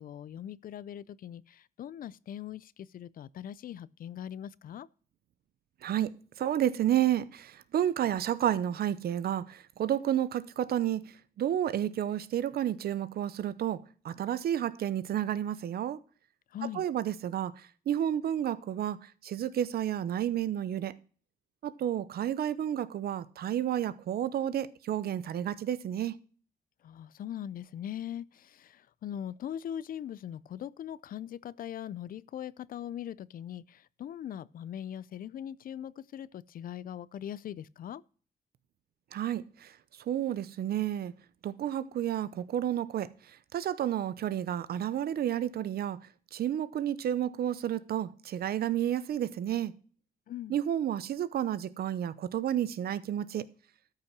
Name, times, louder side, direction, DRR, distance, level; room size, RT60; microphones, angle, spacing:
voice 1, 0.0-4.9 16.5-16.9 26.8-38.0 50.3-50.6, left 10 dB, 60° left, 0.5 m, -41 dB
voice 2, 5.8-11.1 11.4-16.0 16.7-17.5 17.9-19.0 19.2-20.9 21.6-26.2 39.1-39.7 40.1-41.1 41.4-43.1 43.5-46.0 46.3-49.7 50.5-53.4, right 11 dB, 75° right, 0.8 m, -31 dB
13.0 x 5.7 x 5.9 m
cardioid pair, 135°, 16 cm